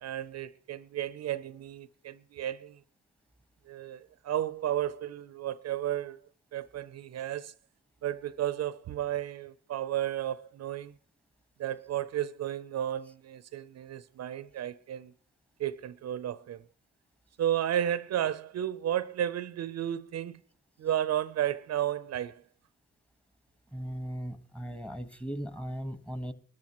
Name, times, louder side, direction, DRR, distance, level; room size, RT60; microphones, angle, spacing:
voice 1, 0.0-2.8 3.7-6.2 6.5-7.5 8.0-10.9 11.6-15.1 15.6-16.6 17.4-20.4 20.8-22.4, right 11 dB, 60° right, 0.6 m, -33 dB
voice 2, 23.7-26.3, equal, 5° left, 1.3 m, -38 dB
23.5 x 13.5 x 3.0 m
cardioid pair, 90°, 30 cm